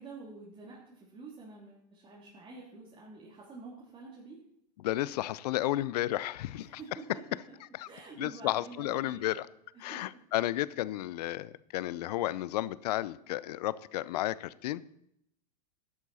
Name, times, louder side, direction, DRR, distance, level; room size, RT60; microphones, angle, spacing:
voice 1, 0.0-4.4 6.5-7.0 7.8-9.4 9.7-10.2, right 3 dB, 25° right, -5 dB, 3.1 m, -48 dB
voice 2, 4.8-6.8 7.7-7.9 8.2-9.5 9.8-14.8, left 15 dB, 70° left, 19 dB, 0.6 m, -32 dB
13.0 x 11.0 x 4.2 m, 0.75 s
hypercardioid pair, 110°, 21 cm